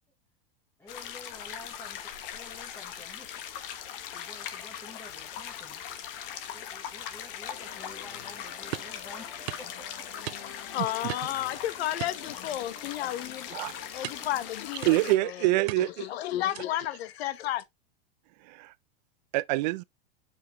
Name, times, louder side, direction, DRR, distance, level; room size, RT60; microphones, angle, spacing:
voice 1, 0.8-3.3 4.1-5.8 6.5-10.3 14.1-14.6 15.8-15.9, left 2 dB, 5° left, 0.9 m, -50 dB
sound 1, 0.9-15.1, left 9 dB, 60° left, 1.4 m, -40 dB
sound 2, 7.5-14.5, left 6 dB, 40° left, 1.2 m, -49 dB
sound 3, 8.7-9.0 9.5-9.7 10.3-10.7 11.1-11.4 12.0-12.8 13.1-13.3 14.0-14.4 14.8-15.2 15.7-16.1 16.5-16.9, right 16 dB, 85° right, 0.7 m, -39 dB
voice 2, 10.7-13.6 13.9-15.5 16.0-17.6, left 13 dB, 85° left, 1.0 m, -32 dB
voice 3, 14.8-15.9 18.5-18.7 19.3-19.8, right 18 dB, 45° right, 0.4 m, -25 dB
6.7 x 5.7 x 2.9 m
supercardioid pair, 170°, 30 cm